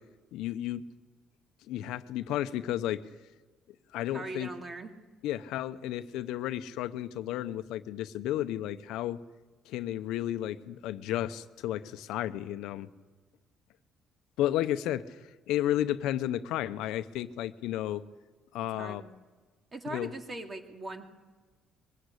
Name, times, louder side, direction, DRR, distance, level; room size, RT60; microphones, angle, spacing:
voice 1, 0.3-0.8 1.7-3.0 3.9-4.5 5.2-9.2 9.7-12.9 14.4-15.2 15.5-18.0 18.5-19.0 19.9-20.1, left 13 dB, 90° left, 12 dB, 0.8 m, -32 dB
voice 2, 4.1-4.9 18.7-19.1 19.7-21.0, right 2 dB, 30° right, 5 dB, 2.5 m, -40 dB
22.0 x 16.5 x 8.3 m, 1.3 s
cardioid pair, 105°, 0 cm